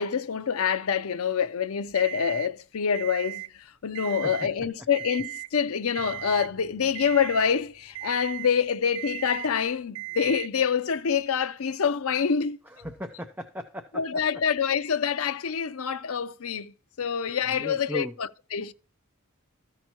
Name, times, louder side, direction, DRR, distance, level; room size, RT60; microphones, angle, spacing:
voice 1, 0.0-12.6 13.9-18.7, left 7 dB, 75° left, 0.6 m, -26 dB
Alarm, 1.9-2.5 2.9-3.5 3.9-4.5 4.9-5.5 5.9-6.5 6.9-7.5 7.9-8.5 8.9-9.5 9.9-10.5, right 22 dB, 65° right, 0.3 m, -37 dB
sound 1, 6.0-11.1, right 1 dB, 25° left, 1.9 m, -59 dB
voice 2, 12.7-14.0 17.5-18.1, equal, 10° right, 0.6 m, -37 dB
14.0 x 5.9 x 2.9 m
head